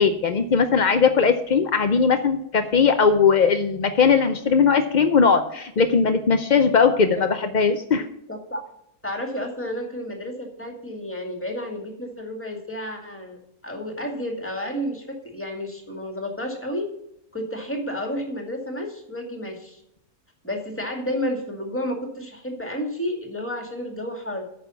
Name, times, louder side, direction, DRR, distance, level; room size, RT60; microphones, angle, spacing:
voice 1, 0.0-8.1, left 5 dB, 65° left, 8 dB, 0.4 m, -19 dB
voice 2, 6.9-7.4 8.3-8.6 9.0-16.9 17.3-19.8 20.4-24.4, equal, 10° left, 2 dB, 2.1 m, -31 dB
9.3 x 6.2 x 7.0 m, 0.78 s
omnidirectional pair, 1.6 m